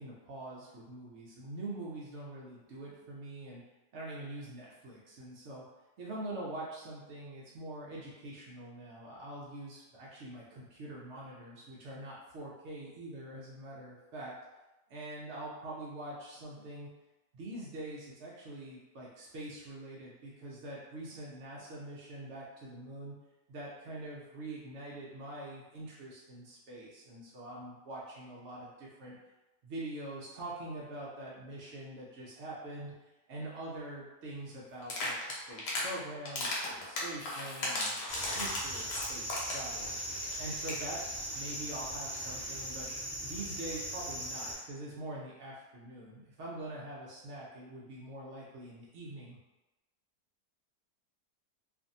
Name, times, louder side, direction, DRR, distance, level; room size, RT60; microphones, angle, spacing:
voice 1, 0.0-3.6 3.9-5.6 6.0-14.3 14.9-16.9 17.3-23.1 23.5-29.2 29.6-32.9 33.3-39.9 40.4-41.0 41.3-49.4, right 1 dB, 80° right, -5 dB, 0.6 m, -44 dB
sound 1, 34.8-35.9 36.3-39.7 40.0-40.1 40.3-40.4 40.6-40.8, left 2 dB, 85° left, 1.4 m, -35 dB
sound 2, 38.1-44.5, right 1 dB, 5° left, 1.2 m, -39 dB
2.6 x 2.5 x 2.6 m, 1.0 s
omnidirectional pair, 1.8 m